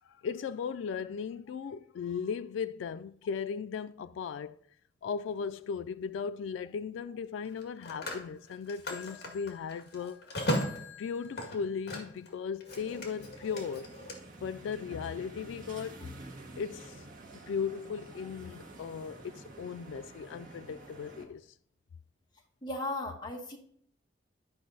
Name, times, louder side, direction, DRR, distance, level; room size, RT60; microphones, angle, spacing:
voice 1, 0.1-4.6 5.0-10.2 11.0-13.9 14.4-16.1 16.6-17.0 17.3-21.5, left 6 dB, 90° left, 0.3 m, -37 dB
Telephone, 5.3-5.5 7.4-12.3 12.6-14.2, left 1 dB, 60° left, 1.9 m, -37 dB
sound 1, 12.7-21.3, right 2 dB, 45° right, 1.6 m, -49 dB
voice 2, 22.6-23.6, left 2 dB, 25° left, 1.4 m, -36 dB
11.5 x 5.4 x 4.0 m
head